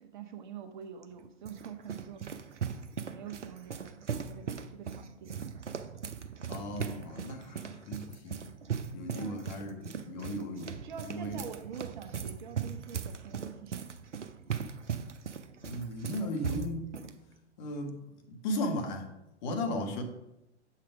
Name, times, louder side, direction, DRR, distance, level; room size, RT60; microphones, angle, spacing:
voice 1, 0.0-2.2 3.1-5.5 9.1-9.4 10.8-13.8 19.7-19.9, right 7 dB, 45° right, 7 dB, 0.8 m, -45 dB
sound 1, 1.0-17.1, right 7 dB, 80° right, 0.7 m, -39 dB
voice 2, 6.5-8.4 8.9-10.8 11.0-11.4 15.6-17.1 17.6-19.1 19.4-20.0, left 1 dB, 40° left, 3 dB, 1.5 m, -36 dB
7.1 x 5.8 x 4.9 m, 0.89 s
figure-of-eight pair, 110°, 35 cm